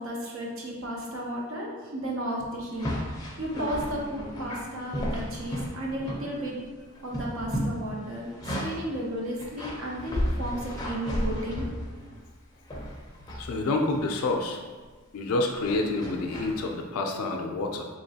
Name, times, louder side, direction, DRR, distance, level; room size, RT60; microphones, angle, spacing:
voice 1, 0.0-6.6 7.0-8.3 8.6-11.7, equal, 65° right, -2 dB, 0.7 m, -33 dB
sound 1, 2.7-6.6 6.9-8.9 9.4-12.2 12.7-13.5 13.9-14.2 15.6-16.6, equal, 20° left, 0.5 m, -33 dB
voice 2, 13.3-14.6 15.1-17.9, left 2 dB, 80° left, 3 dB, 0.4 m, -28 dB
3.8 x 2.9 x 2.7 m, 1.4 s
head